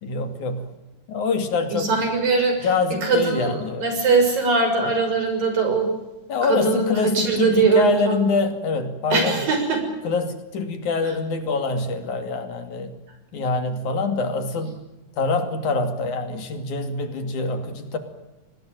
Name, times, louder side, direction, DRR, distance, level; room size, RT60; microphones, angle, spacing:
voice 1, 0.0-0.7 1.1-1.9 2.6-3.9 6.3-9.4 10.0-12.9 13.3-14.8 15.2-18.0, left 4 dB, 65° left, 8 dB, 3.8 m, -25 dB
voice 2, 1.7-2.7 3.0-5.9 6.4-8.2 9.1-9.8, right 4 dB, 80° right, 5 dB, 8.3 m, -21 dB
25.5 x 19.5 x 9.1 m, 1.0 s
omnidirectional pair, 3.9 m